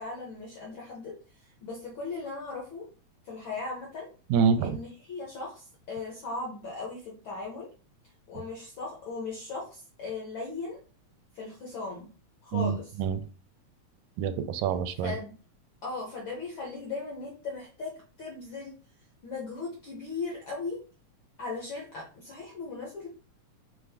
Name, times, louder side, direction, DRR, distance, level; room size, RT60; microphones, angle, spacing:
voice 1, 0.0-2.9 3.2-4.1 4.6-7.7 8.3-10.8 11.3-12.1 12.4-13.0 15.0-15.3 15.8-18.7 19.2-20.8 21.4-23.1, left 3 dB, 70° left, -3 dB, 1.2 m, -38 dB
voice 2, 4.3-4.8 12.5-13.2 14.2-15.1, right 6 dB, 85° right, 9 dB, 1.9 m, -26 dB
5.3 x 2.4 x 3.4 m, 0.38 s
omnidirectional pair, 3.3 m